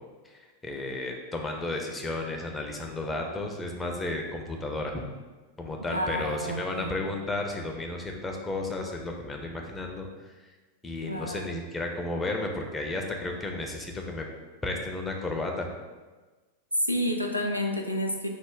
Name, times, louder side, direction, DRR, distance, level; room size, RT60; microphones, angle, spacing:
voice 1, 0.2-5.0 5.6-10.1 10.8-14.3 14.6-15.7, left 2 dB, 10° left, 1 dB, 0.4 m, -33 dB
voice 2, 5.9-7.0 11.0-11.6 16.8-18.3, equal, 90° left, 1 dB, 0.3 m, -30 dB
3.2 x 2.0 x 3.7 m, 1.3 s
figure-of-eight pair, 90°, 0 cm